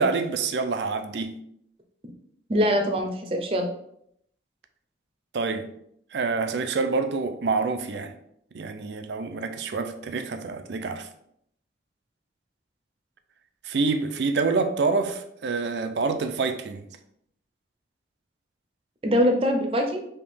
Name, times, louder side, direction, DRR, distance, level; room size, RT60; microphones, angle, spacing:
voice 1, 0.0-1.3 5.3-5.7 6.1-8.2 8.5-11.1 13.6-16.9, right 4 dB, 75° right, 0.4 m, -27 dB
voice 2, 2.5-3.7 19.0-20.1, equal, 30° right, 0.6 m, -23 dB
3.6 x 2.8 x 4.2 m
head